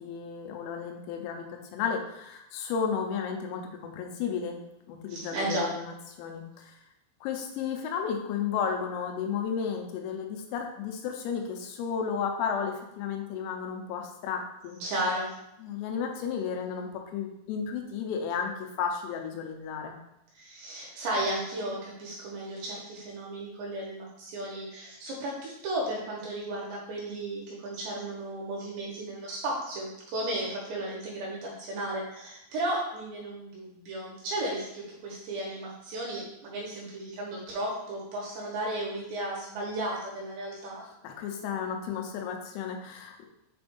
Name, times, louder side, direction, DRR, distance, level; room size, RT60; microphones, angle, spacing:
voice 1, 0.0-4.6 4.9-6.8 7.2-14.8 15.6-20.0 41.0-43.2, left 6 dB, 90° left, 3 dB, 3.6 m, -33 dB
voice 2, 5.1-5.7 14.8-15.3 20.4-40.8, right 1 dB, 70° right, -4 dB, 2.9 m, -34 dB
7.7 x 2.6 x 5.2 m, 0.84 s
omnidirectional pair, 6.0 m